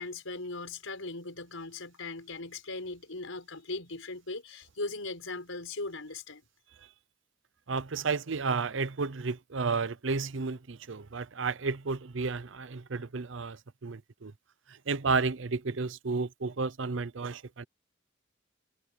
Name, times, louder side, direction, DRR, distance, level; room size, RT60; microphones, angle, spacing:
voice 1, 0.0-6.4, left 3 dB, 85° left, 5.1 m, -39 dB
voice 2, 7.7-14.3 14.9-17.6, right 4 dB, 70° right, 0.7 m, -32 dB
head